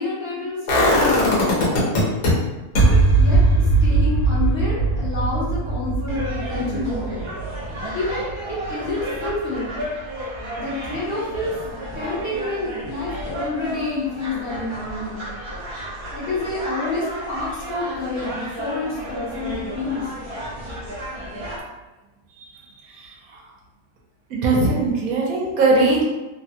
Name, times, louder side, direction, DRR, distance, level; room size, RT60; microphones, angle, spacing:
voice 1, 0.0-1.5 2.9-7.1 7.9-9.8 10.6-11.6 11.9-15.2 16.1-20.1, left 3 dB, 45° left, -8 dB, 1.0 m, -28 dB
sound 1, 0.7-2.3 2.7-8.6 8.9-9.0, right 2 dB, 80° left, 1.3 m, -19 dB
sound 2, 6.1-21.6, equal, 40° right, 0.4 m, -33 dB
voice 2, 22.8-23.4 24.3-26.0, right 3 dB, 80° right, -2 dB, 1.1 m, -20 dB
3.1 x 2.2 x 2.8 m, 1.1 s
omnidirectional pair, 1.5 m